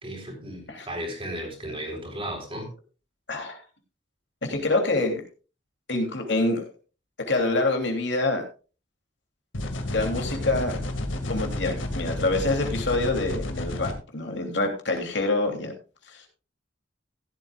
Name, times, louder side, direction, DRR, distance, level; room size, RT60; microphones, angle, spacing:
voice 1, 0.0-2.7, equal, 30° right, 2 dB, 4.1 m, -35 dB
voice 2, 4.5-5.2 5.9-6.6 7.3-8.4 9.9-10.8 11.3-15.7 16.1-16.2, left 2 dB, 65° left, 3 dB, 3.0 m, -26 dB
sound 1, 9.5-13.9, left 1 dB, 80° left, 2.1 m, -31 dB
15.5 x 12.0 x 2.4 m, 0.34 s
head